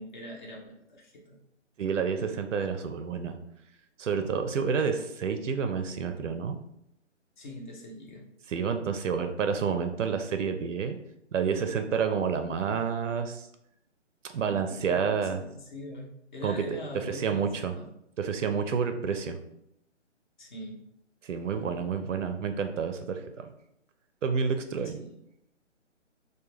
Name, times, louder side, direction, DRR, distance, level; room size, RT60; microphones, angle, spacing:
voice 1, 0.0-1.4 7.4-8.2 14.4-17.9 20.4-20.8 25.0-25.2, left 1 dB, 40° left, -1 dB, 0.6 m, -43 dB
voice 2, 1.8-3.3 4.0-6.6 8.5-11.0 11.3-13.4 14.3-15.4 16.4-16.6 17.1-17.7 18.2-19.4 21.2-23.5 24.2-25.1, right 6 dB, 85° right, 7 dB, 0.5 m, -29 dB
2.3 x 2.2 x 3.1 m, 0.78 s
hypercardioid pair, 150°, 36 cm